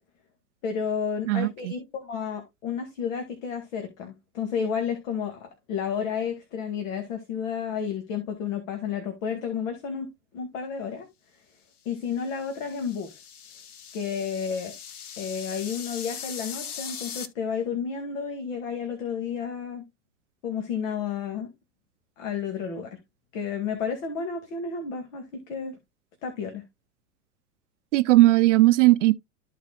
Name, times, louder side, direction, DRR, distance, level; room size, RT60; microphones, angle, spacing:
voice 1, 0.6-10.1 10.3-11.1 11.9-13.2 13.9-14.7 15.2-19.9 20.4-21.5 22.2-23.0 23.3-25.7 26.2-26.6, left 6 dB, 60° left, 2.2 m, -31 dB
voice 2, 1.3-1.7 27.9-29.1, right 17 dB, 55° right, 0.6 m, -18 dB
sound 1, 12.1-17.3, left 8 dB, 75° left, 1.1 m, -40 dB
14.0 x 4.7 x 2.3 m
figure-of-eight pair, 95°, 45 cm